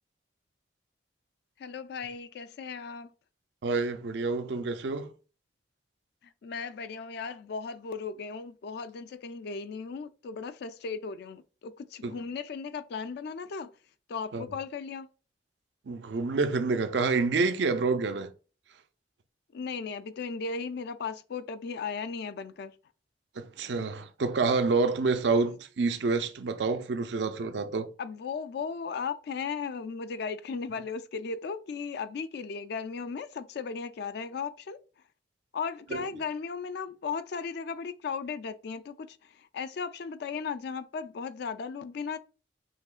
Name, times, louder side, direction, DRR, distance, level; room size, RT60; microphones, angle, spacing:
voice 1, 1.6-3.1 6.4-13.7 14.1-15.1 19.5-22.7 28.0-34.8 35.5-39.1 39.5-42.2, left 5 dB, 65° left, 0.4 m, -36 dB
voice 2, 3.6-5.1 12.0-12.1 14.3-14.4 15.9-18.3 23.4-27.9 35.9-36.0, right 4 dB, 75° right, 0.5 m, -28 dB
5.8 x 2.8 x 2.4 m
head